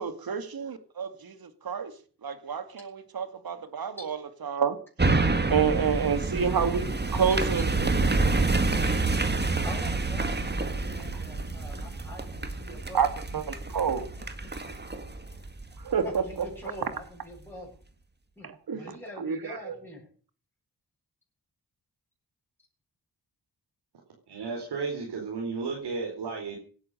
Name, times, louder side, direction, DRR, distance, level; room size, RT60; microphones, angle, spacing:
voice 1, 0.0-1.9 2.2-4.8 5.5-8.2 11.1-11.2 12.9-14.1 15.8-16.5 18.4-19.8, right 6 dB, 65° right, 2.4 m, -29 dB
sound 1, 5.0-16.4 16.9-17.0, right 3 dB, 25° right, 2.1 m, -28 dB
voice 2, 9.6-13.1 16.3-17.8 18.4-20.1, left 1 dB, 5° left, 7.7 m, -44 dB
voice 3, 24.3-26.6, right 4 dB, 85° right, 4.4 m, -33 dB
17.0 x 11.0 x 6.8 m
cardioid pair, 75°, 39 cm